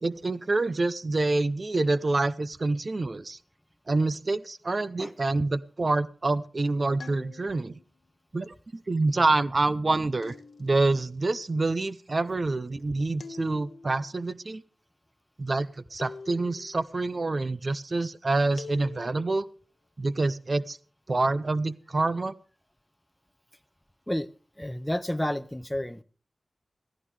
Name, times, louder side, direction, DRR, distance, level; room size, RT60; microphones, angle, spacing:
voice 1, 0.0-3.4 3.9-7.7 8.3-8.5 8.9-14.6 15.4-19.5 20.0-20.8 21.1-22.3, right 3 dB, 50° right, 0.6 m, -27 dB
sound 1, 7.0-7.8 10.2-11.0 13.2-14.0 16.0-16.8 18.6-19.4, left 4 dB, 80° left, 1.0 m, -45 dB
voice 2, 24.6-26.0, left 1 dB, 10° left, 0.7 m, -30 dB
16.5 x 15.0 x 3.3 m
cardioid pair, 50°, 0 cm